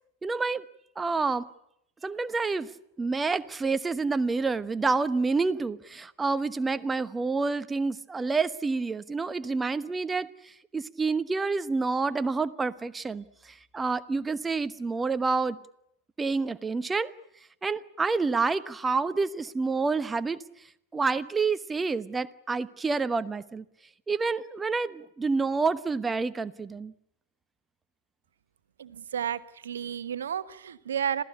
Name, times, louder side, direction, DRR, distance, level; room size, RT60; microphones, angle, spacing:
voice 1, 0.2-0.6 1.0-1.5 2.0-2.7 3.0-15.6 16.2-17.1 17.6-20.4 20.9-23.6 24.1-26.9, right 4 dB, 15° right, 15 dB, 1.1 m, -28 dB
voice 2, 28.8-31.2, right 8 dB, 65° right, 13 dB, 1.3 m, -32 dB
27.0 x 17.0 x 9.9 m, 0.76 s
figure-of-eight pair, 90°, 0 cm